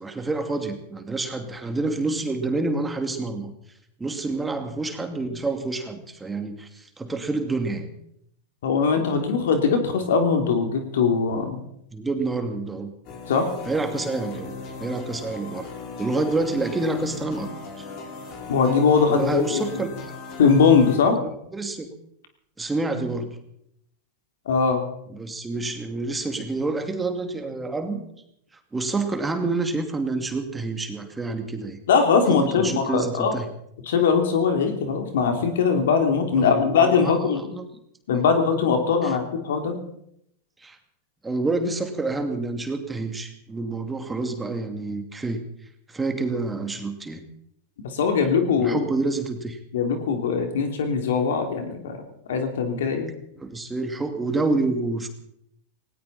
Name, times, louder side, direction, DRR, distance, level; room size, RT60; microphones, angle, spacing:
voice 1, 0.0-3.5 4.0-7.9 11.9-12.9 13.7-15.7 16.0-17.5 17.8-17.9 19.1-19.9 21.5-21.9 22.6-23.4 25.1-28.0 28.7-31.8 32.3-33.5 36.3-37.6 39.0-39.2 40.6-40.8 41.2-45.5 45.9-47.2 48.6-49.6 53.4-55.1, right 3 dB, 15° right, 5 dB, 2.5 m, -28 dB
voice 2, 8.6-11.6 13.3-13.5 18.5-19.8 20.4-21.2 24.5-24.8 31.9-33.3 33.9-37.4 38.1-39.7 47.9-48.8 49.7-52.0 52.3-53.1, left 5 dB, 70° left, 5 dB, 3.1 m, -21 dB
sound 1, 13.0-21.0, left 5 dB, 50° left, 5.7 m, -38 dB
18.5 x 18.0 x 4.3 m, 0.74 s
hypercardioid pair, 100°, 0 cm